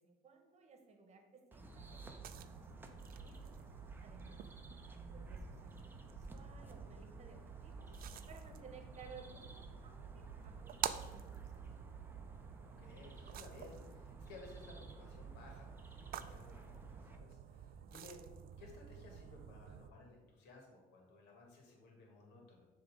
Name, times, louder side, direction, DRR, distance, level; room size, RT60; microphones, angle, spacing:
voice 1, 0.0-3.5 4.0-4.4 5.1-7.9 8.3-11.6, right 4 dB, 40° right, 5 dB, 1.1 m, -59 dB
sound 1, 1.5-17.2, right 2 dB, 10° right, 0.6 m, -54 dB
sound 2, 1.8-19.9, right 10 dB, 60° right, 0.4 m, -50 dB
voice 2, 12.8-18.2 18.6-22.7, left 2 dB, 85° left, 1 dB, 1.7 m, -58 dB
7.0 x 3.1 x 5.0 m, 1.2 s
cardioid pair, 110°, 17 cm